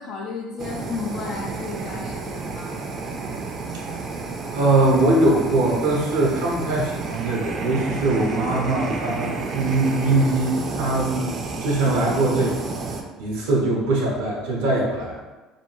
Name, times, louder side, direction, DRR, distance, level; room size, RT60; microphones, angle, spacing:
voice 1, 0.0-2.8, left 4 dB, 65° left, -2 dB, 0.3 m, -33 dB
Fire, 0.6-13.0, right 4 dB, 45° right, 0.4 m, -31 dB
voice 2, 4.5-12.7 13.2-15.2, right 2 dB, 85° right, -2 dB, 0.6 m, -22 dB
2.7 x 2.2 x 2.9 m, 1.2 s
supercardioid pair, 80°, 0 cm